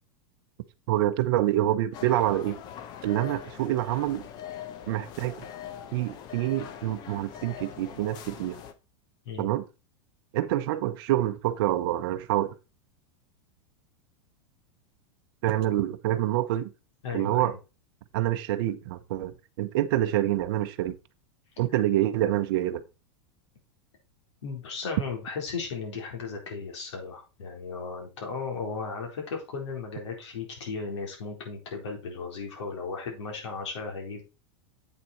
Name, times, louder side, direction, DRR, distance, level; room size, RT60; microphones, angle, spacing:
voice 1, 0.9-2.6 3.0-4.2 4.9-5.3 5.9-8.6 9.4-9.6 10.3-12.6 15.4-16.7 17.1-17.6 18.1-21.0 21.6-22.8, right 14 dB, 50° right, 0.9 m, -26 dB
sound 1, 1.9-8.7, left 9 dB, 30° left, 0.8 m, -42 dB
voice 2, 17.0-17.6 24.4-34.2, left 4 dB, 85° left, 4.3 m, -36 dB
8.2 x 6.8 x 4.5 m
supercardioid pair, 170°, 15 cm